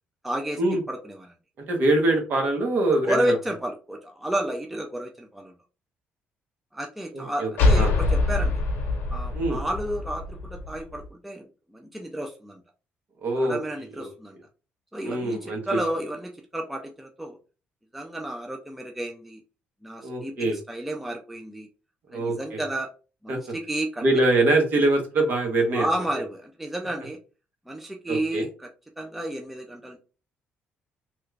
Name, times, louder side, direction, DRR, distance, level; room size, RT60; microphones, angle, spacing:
voice 1, 0.2-1.3 2.9-5.5 6.7-8.6 9.1-12.6 13.4-14.4 14.9-17.4 17.9-19.4 19.8-21.7 22.1-22.9 23.2-24.1 25.7-27.2 27.7-28.7 29.0-30.0, right 1 dB, 5° right, 2 dB, 0.4 m, -31 dB
voice 2, 1.7-3.3 7.1-7.9 9.3-9.6 13.2-13.6 14.0-14.1 15.0-15.8 20.0-20.6 22.1-22.6 23.3-23.4 24.0-25.9 28.1-28.5, right 2 dB, 50° right, 2 dB, 1.1 m, -23 dB
sound 1, 7.6-11.1, left 3 dB, 65° left, 0.8 m, -24 dB
3.0 x 2.4 x 3.2 m, 0.35 s
cardioid pair, 150°, 4 cm